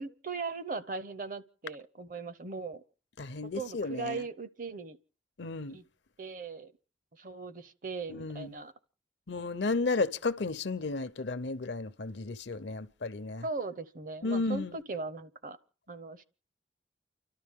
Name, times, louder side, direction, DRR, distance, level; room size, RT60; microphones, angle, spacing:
voice 1, 0.0-2.8 3.5-5.0 5.7-5.8 6.2-6.7 7.1-8.7 13.4-15.6 15.9-16.2, right 4 dB, 45° right, 0.7 m, -39 dB
voice 2, 3.2-4.2 5.4-5.8 8.1-8.6 9.3-13.4 14.2-14.8, left 3 dB, 70° left, 0.7 m, -33 dB
29.5 x 12.5 x 3.6 m
head